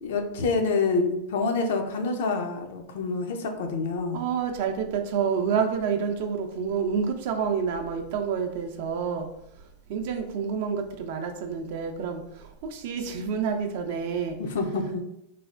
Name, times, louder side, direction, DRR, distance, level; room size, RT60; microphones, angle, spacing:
voice 1, 0.0-4.2 14.4-15.0, left 4 dB, 75° left, 5 dB, 0.5 m, -27 dB
voice 2, 4.1-9.3 9.9-14.4, right 6 dB, 65° right, 5 dB, 0.4 m, -28 dB
3.1 x 2.1 x 2.4 m, 0.83 s
hypercardioid pair, 120°, 0 cm